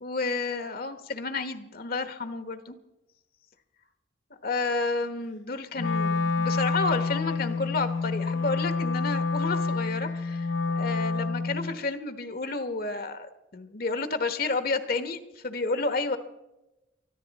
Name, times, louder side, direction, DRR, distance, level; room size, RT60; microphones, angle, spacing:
voice 1, 0.0-2.8 4.4-16.2, left 3 dB, 55° left, 10 dB, 1.1 m, -31 dB
Wind instrument woodwind instrument, 5.8-11.8, left 4 dB, 80° left, 0.6 m, -28 dB
24.0 x 14.0 x 4.1 m, 0.99 s
head